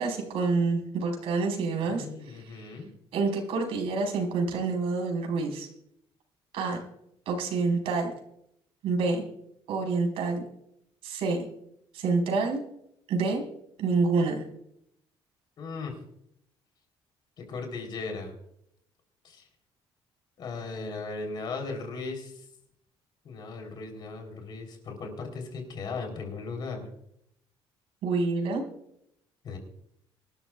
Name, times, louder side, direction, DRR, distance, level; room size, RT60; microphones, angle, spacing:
voice 1, 0.0-2.6 3.1-5.7 6.5-6.8 7.3-8.1 8.8-9.2 9.7-10.4 11.0-11.4 11.9-12.6 13.1-13.4 13.8-14.4 28.0-28.6, right 4 dB, 70° right, 1 dB, 4.7 m, -27 dB
voice 2, 1.9-2.9 15.6-15.9 17.4-18.3 19.2-19.4 20.4-22.4 23.2-26.9 29.4-29.6, left 4 dB, 45° left, 3 dB, 3.8 m, -37 dB
24.0 x 13.0 x 2.4 m, 0.74 s
cardioid pair, 170°, 10 cm